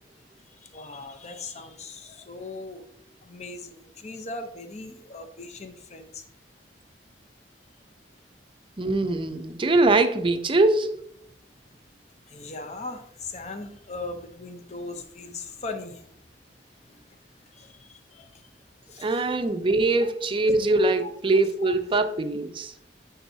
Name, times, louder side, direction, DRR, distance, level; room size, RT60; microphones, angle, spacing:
voice 1, 0.6-2.8 3.2-6.2 12.3-16.0 16.9-17.0 17.5-18.3 18.9-19.2 20.0-20.1 21.0-21.1 21.6-22.0, left 3 dB, 40° left, 0.7 m, -39 dB
voice 2, 8.8-11.0 19.0-22.7, right 2 dB, 30° right, 0.5 m, -22 dB
10.5 x 3.9 x 2.7 m
head